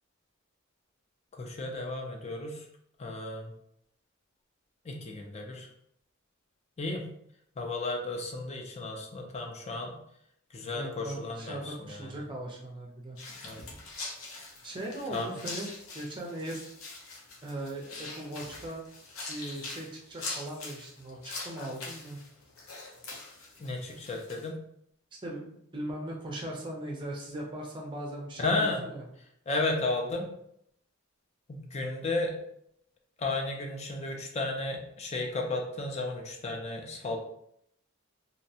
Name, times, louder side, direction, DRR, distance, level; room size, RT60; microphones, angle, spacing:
voice 1, 1.3-2.7 3.0-3.5 4.8-5.7 6.8-7.1 7.6-10.0 10.5-12.1 13.4-13.6 15.1-15.4 23.6-24.6 28.4-28.8 29.5-30.3 31.5-32.4 33.2-37.2, left 2 dB, 30° left, 2 dB, 0.4 m, -33 dB
voice 2, 10.7-13.2 14.6-15.7 15.9-16.6 17.4-18.8 19.3-22.2 25.2-29.0, right 1 dB, 20° right, -1 dB, 0.5 m, -39 dB
sound 1, 13.2-24.5, left 3 dB, 75° left, 0.6 m, -43 dB
2.6 x 2.1 x 2.7 m, 0.73 s
head